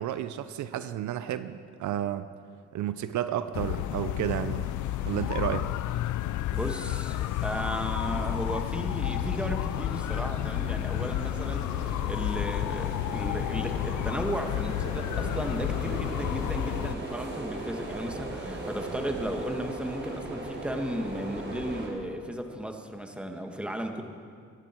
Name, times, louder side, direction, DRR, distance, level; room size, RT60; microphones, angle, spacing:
voice 1, 0.0-2.3 2.7-4.7 5.0-5.7, right 11 dB, 75° right, 12 dB, 0.7 m, -31 dB
sound 1, 3.5-17.0, left 13 dB, 75° left, 0.5 m, -31 dB
sound 2, 4.3-21.9, right 2 dB, 40° right, 3.8 m, -39 dB
voice 2, 6.5-24.0, equal, 5° right, 4 dB, 1.6 m, -35 dB
24.5 x 11.5 x 4.6 m, 2.3 s
cardioid pair, 90°, 30 cm